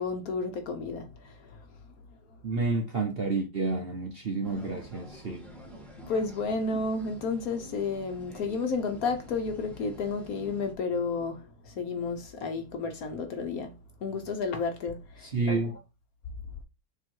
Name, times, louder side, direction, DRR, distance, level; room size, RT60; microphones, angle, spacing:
voice 1, 0.0-1.3 6.1-13.7 14.0-15.6, left 4 dB, 60° left, 1.1 m, -32 dB
voice 2, 2.4-5.5 15.2-15.7, right 3 dB, 45° right, 0.8 m, -30 dB
sound 1, 4.4-10.7, equal, ahead, 1.2 m, -48 dB
6.8 x 3.0 x 4.5 m
omnidirectional pair, 2.0 m